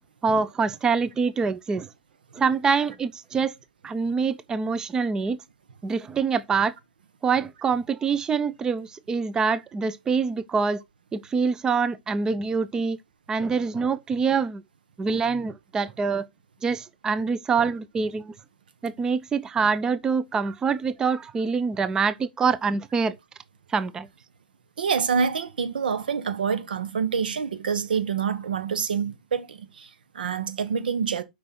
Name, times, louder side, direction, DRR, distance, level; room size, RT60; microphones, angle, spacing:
voice 1, 0.2-1.9 2.3-3.5 3.8-5.4 5.8-6.7 7.2-10.8 11.1-13.0 13.3-14.6 15.0-16.3 16.6-18.3 18.8-23.1 23.7-24.1, right 5 dB, 15° right, 0.5 m, -25 dB
voice 2, 24.8-31.2, right 6 dB, 80° right, 1.3 m, -27 dB
6.0 x 5.1 x 5.9 m
hypercardioid pair, 130°, 5 cm